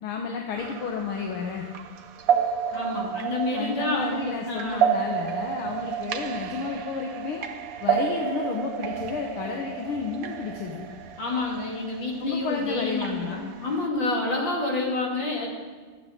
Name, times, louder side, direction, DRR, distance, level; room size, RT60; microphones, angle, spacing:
voice 1, 0.0-1.7 3.5-7.5 7.8-10.9 12.2-13.5, left 5 dB, 80° left, 2 dB, 1.9 m, -31 dB
sound 1, 0.6-13.9, right 8 dB, 60° right, 0.9 m, -31 dB
voice 2, 2.7-4.9 11.2-15.5, left 2 dB, 60° left, -1 dB, 3.1 m, -28 dB
12.5 x 7.9 x 7.8 m, 1.5 s
omnidirectional pair, 2.3 m